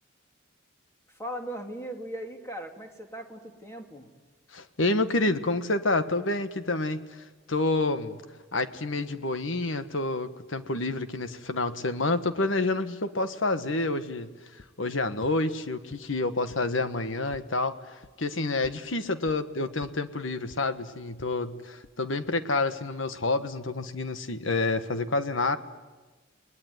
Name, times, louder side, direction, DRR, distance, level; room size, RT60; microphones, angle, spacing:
voice 1, 1.1-4.1, right 1 dB, 15° left, 3 dB, 2.7 m, -38 dB
voice 2, 4.5-8.2 8.5-14.3 14.8-25.6, left 2 dB, 70° left, 10 dB, 1.5 m, -28 dB
sound 1, 14.6-14.7 15.2-15.3 15.9-16.0 16.5-16.6 17.0-17.4 18.0-18.1 18.6-18.7 19.3-19.4 19.8-19.9 20.5-20.6 21.2-21.3 21.8-21.9, left 3 dB, 55° left, 0.8 m, -48 dB
30.0 x 20.5 x 9.6 m, 1.3 s
head